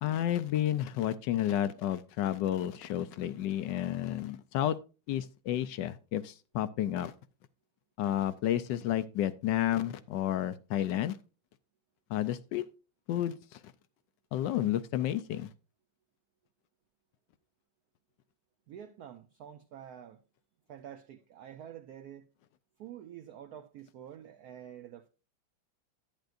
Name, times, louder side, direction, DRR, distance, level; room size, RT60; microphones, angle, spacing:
voice 1, 0.0-4.8 5.1-7.1 8.0-11.2 12.1-12.6 13.1-13.3 14.3-15.5, left 12 dB, 75° left, 1.1 m, -31 dB
voice 2, 18.7-20.2 20.7-22.2 22.8-25.1, right 10 dB, 70° right, 0.9 m, -48 dB
10.5 x 9.1 x 2.5 m
omnidirectional pair, 2.2 m